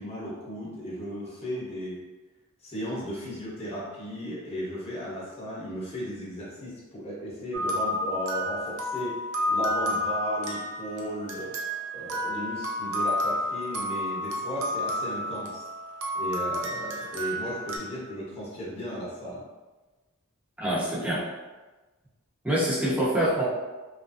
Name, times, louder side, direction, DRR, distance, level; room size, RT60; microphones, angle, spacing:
voice 1, 0.0-2.0 2.6-9.2 9.5-11.5 11.9-15.7 16.1-19.4, equal, 30° left, -7 dB, 0.9 m, -35 dB
sound 1, 7.5-17.8, left 1 dB, 75° right, 0.6 m, -31 dB
voice 2, 20.6-21.2 22.4-23.4, right 1 dB, 5° right, -8 dB, 0.7 m, -25 dB
3.1 x 2.4 x 2.6 m, 1.2 s
head